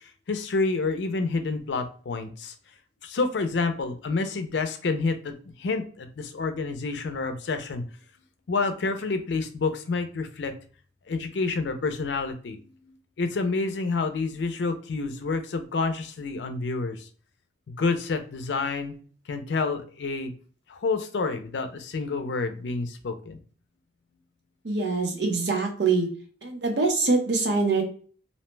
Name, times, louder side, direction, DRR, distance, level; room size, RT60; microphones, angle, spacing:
voice 1, 0.3-2.5 3.0-7.8 8.5-10.5 11.1-17.1 17.7-18.9 19.3-20.3 20.7-23.4, left 3 dB, 80° left, 8 dB, 0.5 m, -28 dB
voice 2, 24.6-26.1 26.4-27.8, right 3 dB, 70° right, 3 dB, 0.7 m, -24 dB
2.7 x 2.1 x 3.1 m, 0.41 s
head